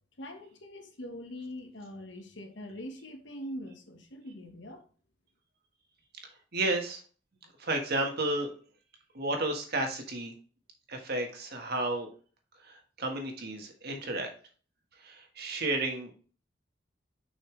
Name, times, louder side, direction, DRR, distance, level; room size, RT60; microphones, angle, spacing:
voice 1, 0.2-4.8, left 1 dB, 70° left, 1.4 m, -43 dB
voice 2, 6.5-7.0 7.6-8.5 9.1-10.3 10.9-12.1 12.7-14.3 15.0-16.1, right 2 dB, 60° right, 1.5 m, -32 dB
6.5 x 5.6 x 3.3 m
head